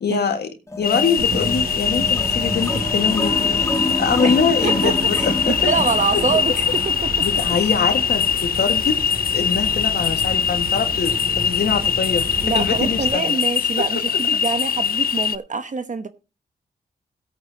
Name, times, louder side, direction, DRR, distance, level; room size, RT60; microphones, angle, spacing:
voice 1, 0.0-0.5 0.8-3.7 4.0-5.6 6.1-6.2 7.2-9.0 9.3-12.3 12.6-13.4, left 5 dB, 75° left, 1.8 m, -23 dB
sound 1, 0.7-7.0, left 1 dB, 15° left, 1.5 m, -28 dB
sound 2, 0.8-15.4, left 8 dB, 60° left, 0.5 m, -22 dB
sound 3, 1.2-13.1, right 2 dB, 65° right, 2.5 m, -32 dB
voice 2, 4.6-7.3 12.4-16.1, right 5 dB, 45° right, 1.0 m, -25 dB
17.0 x 8.6 x 2.9 m
cardioid pair, 70°, 17 cm